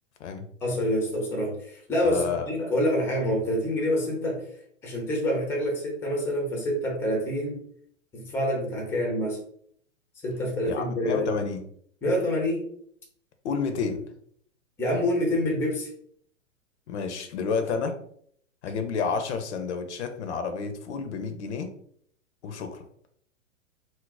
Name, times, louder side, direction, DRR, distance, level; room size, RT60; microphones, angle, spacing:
voice 1, 0.6-4.4 4.8-7.6 8.1-9.4 10.2-11.3 12.0-12.6 14.8-15.9, equal, 5° left, 0 dB, 0.5 m, -27 dB
voice 2, 2.0-2.5 10.7-11.6 13.4-14.0 16.9-18.0 18.6-21.7 22.4-22.8, left 5 dB, 60° left, 7 dB, 0.6 m, -30 dB
2.5 x 2.0 x 3.9 m, 0.64 s
hypercardioid pair, 110°, 38 cm